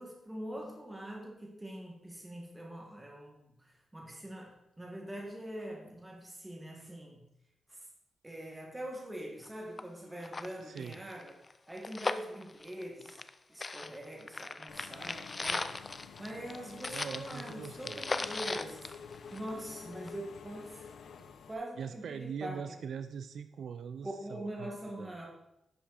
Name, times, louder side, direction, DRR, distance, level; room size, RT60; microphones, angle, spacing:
voice 1, 0.0-7.2 7.7-7.8 8.2-11.3 11.7-13.2 13.5-15.8 16.2-20.9 21.2-22.6 24.0-25.3, right 1 dB, 10° right, 0 dB, 1.8 m, -44 dB
sound 1, 9.4-9.5 9.8-9.9 10.2-13.3 13.6-19.7 20.1-20.2, left 3 dB, 25° left, 0.4 m, -38 dB
voice 2, 10.6-11.0 16.9-18.2 21.8-25.3, right 7 dB, 65° right, 10 dB, 0.4 m, -42 dB
Engine / Mechanisms, 14.7-21.5, left 6 dB, 70° left, 0.6 m, -49 dB
11.0 x 5.9 x 4.2 m, 0.85 s
wide cardioid pair, 160°, 0 cm